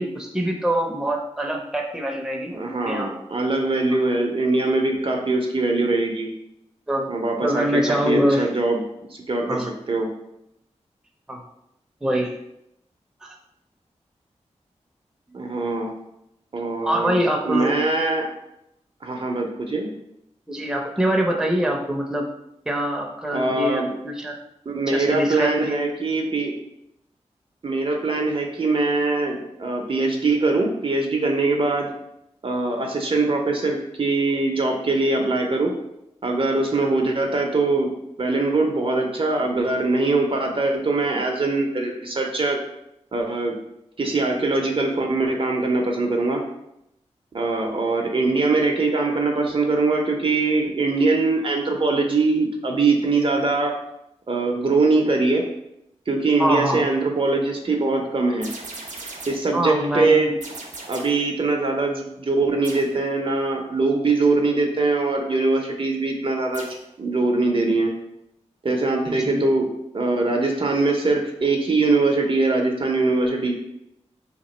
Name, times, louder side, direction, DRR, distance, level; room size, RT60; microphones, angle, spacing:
voice 1, 0.0-3.1 6.9-7.1 7.4-8.5 9.5-9.7 11.3-11.4 12.0-12.3 13.2-13.3 16.8-17.7 20.5-22.3 22.7-24.4 24.9-25.8 56.4-56.8 59.5-60.3 69.1-69.4, equal, 5° right, 1 dB, 0.6 m, -24 dB
voice 2, 2.5-6.3 7.1-8.8 9.1-10.1 15.3-15.9 16.5-17.2 17.4-18.3 19.0-19.9 23.3-23.9 24.7-26.5 27.6-31.9 32.4-35.7 36.2-37.9 38.2-42.6 43.1-43.5 44.0-46.4 47.3-53.7 54.3-55.4 56.1-58.5 59.3-60.3 60.9-66.7 67.0-67.9 68.6-69.7 69.9-73.5, right 3 dB, 50° right, 2 dB, 0.6 m, -22 dB
sound 1, 58.4-59.6 60.4-61.3 62.6-63.0 66.5-66.9, right 3 dB, 85° right, 0.6 m, -38 dB
2.9 x 2.4 x 4.2 m, 0.81 s
cardioid pair, 50°, 12 cm